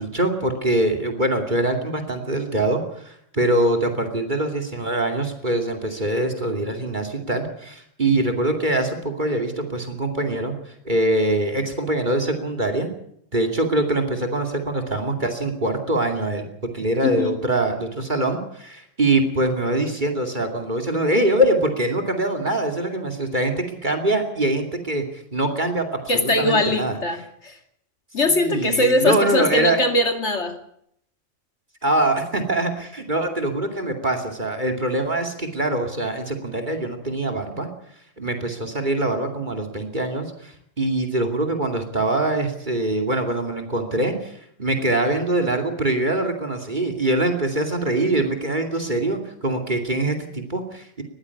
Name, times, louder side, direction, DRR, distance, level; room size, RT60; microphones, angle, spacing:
voice 1, 0.0-12.9 13.3-16.5 16.7-25.0 25.3-27.0 28.2-29.8 31.8-37.7 38.2-51.0, right 1 dB, 40° right, 7 dB, 2.8 m, -23 dB
voice 2, 17.0-17.4 26.1-27.6 28.1-30.5, left 1 dB, 65° left, 6 dB, 2.8 m, -21 dB
21.0 x 14.5 x 8.5 m, 0.70 s
omnidirectional pair, 1.3 m